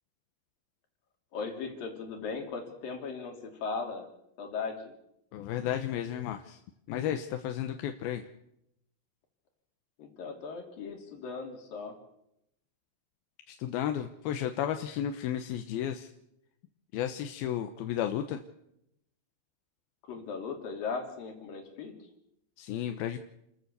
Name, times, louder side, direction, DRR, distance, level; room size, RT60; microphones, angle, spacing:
voice 1, 1.3-4.1 4.4-4.9 10.0-12.0 20.1-21.9, left 4 dB, 70° left, 3 dB, 4.8 m, -38 dB
voice 2, 5.3-6.6 6.9-8.3 13.5-16.1 16.9-18.4 22.6-23.2, left 10 dB, 90° left, 7 dB, 2.9 m, -33 dB
29.5 x 14.5 x 6.9 m, 0.81 s
omnidirectional pair, 4.2 m